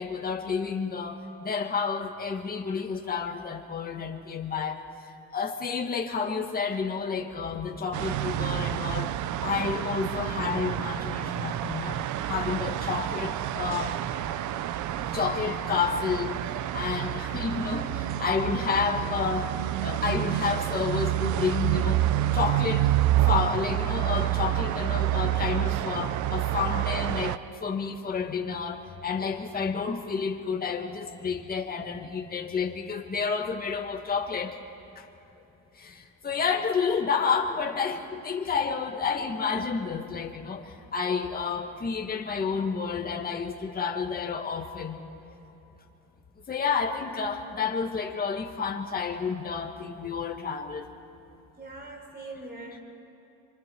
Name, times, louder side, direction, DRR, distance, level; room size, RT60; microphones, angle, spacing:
voice 1, 0.0-4.8 5.3-9.1 9.4-14.0 14.9-16.4 16.7-19.5 19.8-22.0 22.3-22.9 23.3-34.6 35.0-35.1 35.8-40.7 40.9-45.0 46.5-50.9, left 5 dB, 30° left, 1 dB, 1.9 m, -30 dB
sound 1, 7.9-27.4, right 13 dB, 65° right, 0.6 m, -28 dB
voice 2, 51.6-52.8, right 2 dB, 30° right, 1 dB, 4.5 m, -42 dB
28.5 x 25.0 x 4.7 m, 2.9 s
cardioid pair, 125°, 32 cm